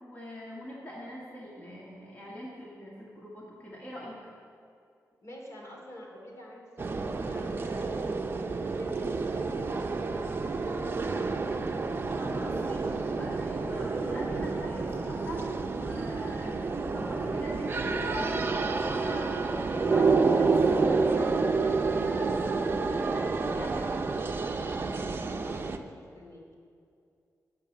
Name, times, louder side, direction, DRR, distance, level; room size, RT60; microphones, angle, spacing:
voice 1, 0.0-4.2 12.1-24.1, equal, 25° left, -6 dB, 1.8 m, -42 dB
voice 2, 5.2-11.8 25.4-26.4, equal, 50° left, -1 dB, 2.9 m, -47 dB
sound 1, 6.8-25.8, right 4 dB, 35° right, 0.7 m, -29 dB
13.0 x 6.0 x 8.5 m, 2.4 s
wide cardioid pair, 135°, 6 cm